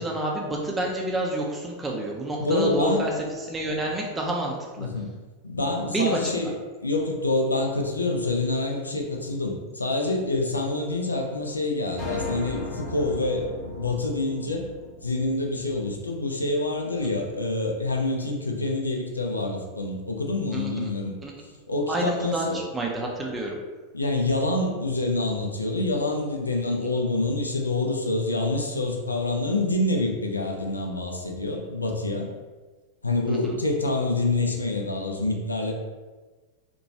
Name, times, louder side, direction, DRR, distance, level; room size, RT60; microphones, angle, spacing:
voice 1, 0.0-3.1 3.4-4.9 5.9-6.4 20.5-20.9 21.2-21.3 21.9-23.6 33.3-33.5, right 2 dB, 15° right, -1 dB, 0.4 m, -28 dB
voice 2, 2.4-3.1 4.8-5.1 5.4-6.5 6.8-14.7 15.0-21.2 21.7-22.6 23.9-32.3 33.0-35.7, left 2 dB, 80° left, 1 dB, 0.4 m, -26 dB
sound 1, 12.0-16.4, left 2 dB, 35° left, 0.9 m, -36 dB
2.9 x 2.2 x 2.6 m, 1.3 s
figure-of-eight pair, 90°, 0 cm